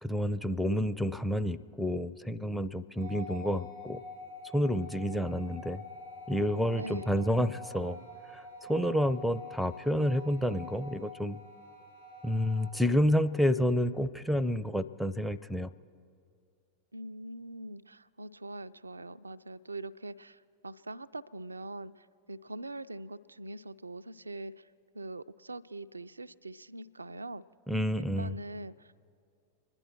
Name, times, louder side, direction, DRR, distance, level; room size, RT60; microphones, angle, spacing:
voice 1, 0.0-4.0 4.5-5.8 6.3-8.0 8.3-11.4 12.2-15.7 27.7-28.4, equal, ahead, 10 dB, 0.5 m, -29 dB
sound 1, 3.0-12.7, left 1 dB, 90° left, 2.6 m, -47 dB
voice 2, 6.7-7.1 16.9-24.7 24.9-27.4 28.0-29.0, right 2 dB, 80° right, 14 dB, 0.3 m, -43 dB
26.0 x 10.5 x 4.4 m, 2.5 s
figure-of-eight pair, 90°, 0 cm